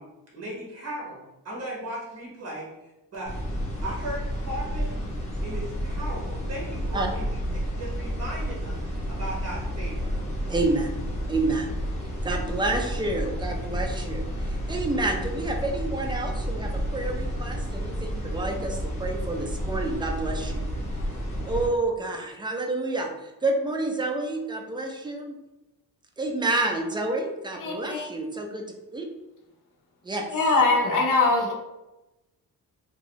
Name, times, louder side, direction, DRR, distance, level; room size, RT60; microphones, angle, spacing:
voice 1, 0.0-2.7 3.1-3.4 3.8-5.0 5.4-8.8 9.1-10.2, right 1 dB, 40° right, -4 dB, 1.3 m, -37 dB
sound 1, 3.2-21.7, equal, 20° left, 1.0 m, -31 dB
voice 2, 10.5-10.9 11.3-11.8 12.2-20.6 21.4-25.4 26.2-28.7 28.9-29.1 30.0-30.3, right 2 dB, 15° right, 2 dB, 0.4 m, -29 dB
voice 3, 27.6-28.1 30.3-31.5, left 3 dB, 55° left, -1 dB, 0.8 m, -22 dB
2.9 x 2.6 x 2.9 m, 0.99 s
cardioid pair, 125°, 37 cm